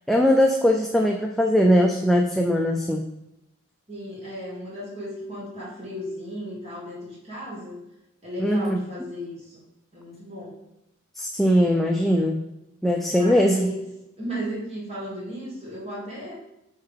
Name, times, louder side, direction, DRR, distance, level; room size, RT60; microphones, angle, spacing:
voice 1, 0.1-3.0 8.4-8.8 11.2-12.4 12.8-13.7, equal, ahead, 1 dB, 0.3 m, -20 dB
voice 2, 3.9-7.8 8.2-9.6 9.9-10.6 13.1-13.8 14.2-16.3, equal, 30° right, -6 dB, 1.7 m, -35 dB
5.5 x 5.2 x 3.7 m, 0.90 s
head